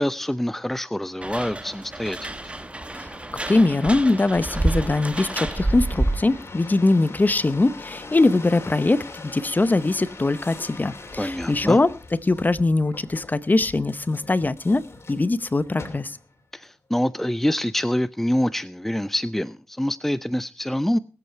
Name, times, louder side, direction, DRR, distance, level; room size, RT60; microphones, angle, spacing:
voice 1, 0.0-2.4 11.2-11.8 16.5-21.0, left 1 dB, 5° left, 0.6 m, -26 dB
sound 1, 1.2-6.4, right 2 dB, 25° right, 1.3 m, -28 dB
sound 2, 1.9-16.4 17.0-17.5, left 3 dB, 55° left, 2.9 m, -42 dB
voice 2, 3.5-11.9 12.2-14.8 15.1-16.2, left 2 dB, 35° left, 0.8 m, -21 dB
20.0 x 8.2 x 4.6 m
cardioid pair, 45°, 5 cm